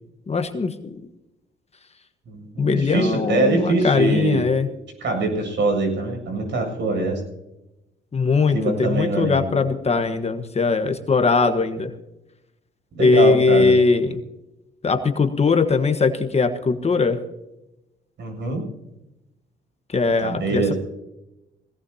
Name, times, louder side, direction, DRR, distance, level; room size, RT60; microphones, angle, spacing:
voice 1, 0.3-0.9 2.6-4.7 8.1-11.9 13.0-14.2 14.8-17.2 19.9-20.7, left 4 dB, 30° left, 8 dB, 1.3 m, -20 dB
voice 2, 2.3-4.5 5.0-7.2 8.5-9.6 12.9-13.7 18.2-18.6 20.2-20.8, right 3 dB, 65° right, 3 dB, 7.5 m, -23 dB
20.0 x 18.0 x 2.8 m, 0.94 s
cardioid pair, 90°, 20 cm